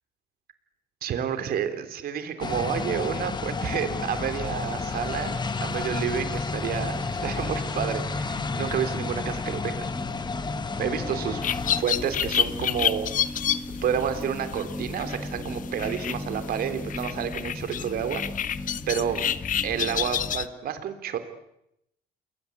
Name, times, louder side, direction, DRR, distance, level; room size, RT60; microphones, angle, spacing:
voice 1, 1.0-9.9 10.8-11.4 11.8-13.1 13.8-18.2 18.9-19.3 19.6-21.2, right 8 dB, 65° right, 9 dB, 3.5 m, -30 dB
sound 1, 2.4-11.8, left 4 dB, 25° left, 1.5 m, -31 dB
sound 2, 3.8-20.4, left 1 dB, 10° left, 1.5 m, -38 dB
sound 3, 11.4-20.5, left 9 dB, 50° left, 1.2 m, -30 dB
29.0 x 21.5 x 8.6 m, 0.81 s
cardioid pair, 110°, 17 cm